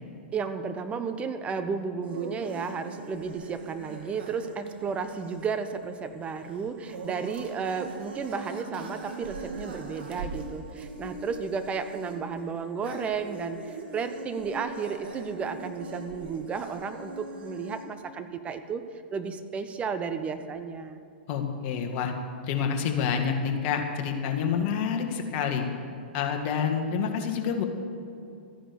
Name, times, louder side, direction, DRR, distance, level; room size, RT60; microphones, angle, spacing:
voice 1, 0.3-18.9 19.1-21.0, right 5 dB, 20° right, 9 dB, 0.9 m, -33 dB
sound 1, 2.0-17.8, right 3 dB, 70° right, 2.3 m, -41 dB
voice 2, 21.3-22.1 22.4-25.6 26.1-27.6, left 7 dB, 45° left, 3 dB, 1.9 m, -28 dB
13.5 x 10.0 x 6.9 m, 2.6 s
hypercardioid pair, 115°, 6 cm